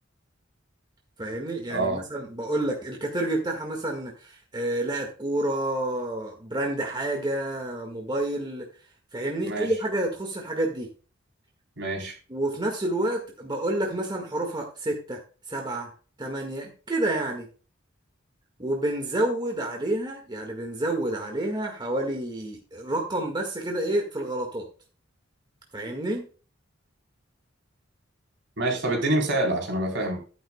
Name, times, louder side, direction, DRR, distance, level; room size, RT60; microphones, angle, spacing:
voice 1, 1.2-8.7 9.1-10.9 12.3-15.2 15.5-15.9 16.2-17.5 18.6-24.7 25.7-26.3, right 1 dB, 20° right, 1 dB, 1.7 m, -29 dB
voice 2, 1.7-2.0 9.4-9.7 11.8-12.2 28.6-30.2, right 1 dB, 65° right, 1 dB, 3.6 m, -26 dB
11.5 x 10.5 x 2.2 m, 0.36 s
head